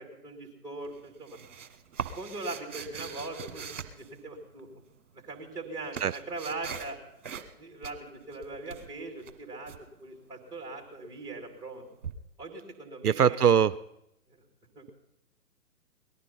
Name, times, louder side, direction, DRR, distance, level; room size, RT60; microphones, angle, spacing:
voice 1, 0.0-1.4 2.2-4.7 5.1-7.0 7.6-9.7 10.0-11.8 12.4-13.4 14.3-14.4 14.8-14.9, right 2 dB, 10° right, 3 dB, 2.4 m, -40 dB
sound 1, 0.8-4.7 5.4-7.0 7.2-7.6 7.8-9.8 12.0-12.1, right 6 dB, 50° right, 1.5 m, -41 dB
voice 2, 13.0-13.7, right 8 dB, 75° right, 16 dB, 0.6 m, -21 dB
18.5 x 12.5 x 5.6 m, 0.82 s
figure-of-eight pair, 130°, 47 cm